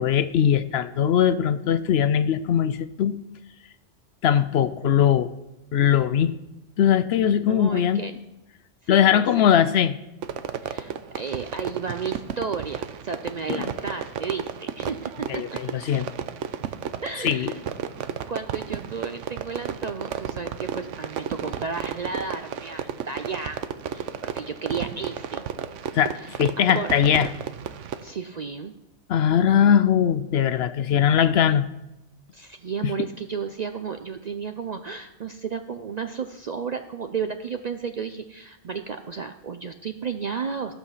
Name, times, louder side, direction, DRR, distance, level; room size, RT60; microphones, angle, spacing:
voice 1, 0.0-3.2 4.2-5.3 5.7-6.3 6.8-8.0 8.9-10.0 13.5-13.7 15.3-16.1 17.2-17.5 25.9-27.3 29.1-31.7 32.8-32.9, left 9 dB, 65° left, 13 dB, 0.8 m, -20 dB
voice 2, 7.1-8.1 8.8-9.6 10.6-15.4 17.0-17.6 18.3-23.6 23.9-25.4 26.6-26.9 28.0-28.8 32.3-40.8, right 5 dB, 55° right, 8 dB, 0.5 m, -33 dB
Fireworks, 10.2-28.1, right 8 dB, 85° right, 1.0 m, -33 dB
15.0 x 5.7 x 5.7 m, 0.93 s
omnidirectional pair, 1.2 m